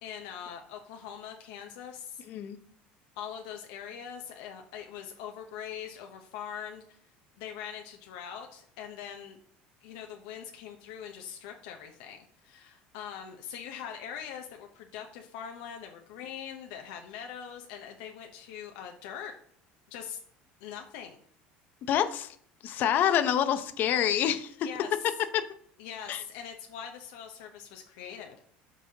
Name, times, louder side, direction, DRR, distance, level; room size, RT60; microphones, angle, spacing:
voice 1, 0.0-2.2 3.1-7.0 7.4-9.4 9.8-12.2 12.4-19.3 19.9-20.2 20.6-21.2 24.6-24.9 25.8-28.4, left 8 dB, 85° left, 3 dB, 0.8 m, -42 dB
voice 2, 2.3-2.6 21.9-22.4 22.6-24.7 25.3-25.5 26.1-26.2, left 10 dB, 50° left, 11 dB, 0.7 m, -27 dB
12.0 x 4.1 x 2.8 m, 0.62 s
cardioid pair, 125°, 4 cm